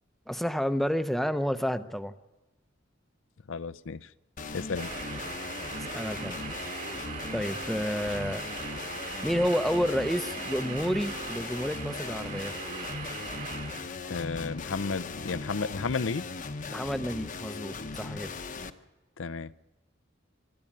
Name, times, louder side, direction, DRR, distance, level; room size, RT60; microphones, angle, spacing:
voice 1, 0.3-2.1 5.9-6.4 7.3-8.4 9.2-12.5 16.7-18.3, equal, ahead, 0.8 m, -30 dB
voice 2, 3.5-4.0 4.5-4.9 14.1-16.2 19.2-19.5, left 4 dB, 85° left, 0.6 m, -32 dB
sound 1, 4.4-18.7, left 4 dB, 45° left, 0.9 m, -39 dB
sound 2, 4.8-13.8, right 4 dB, 45° right, 3.2 m, -40 dB
24.5 x 12.0 x 8.7 m
head